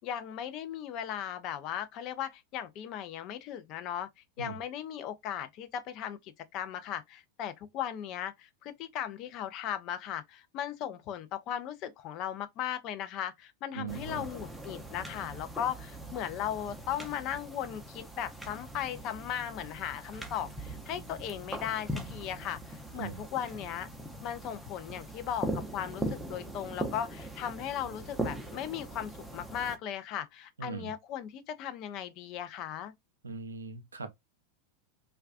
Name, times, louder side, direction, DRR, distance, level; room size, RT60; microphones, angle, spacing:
voice 1, 0.0-4.1 4.4-23.9 24.2-32.9, left 10 dB, 45° left, 0.4 m, -37 dB
voice 2, 13.7-14.3 23.0-23.2 30.6-30.9 33.2-34.1, right 5 dB, 90° right, 0.4 m, -40 dB
sound 1, 13.9-29.8, right 1 dB, ahead, 0.5 m, -41 dB
2.3 x 2.2 x 2.4 m
hypercardioid pair, 95°, 0 cm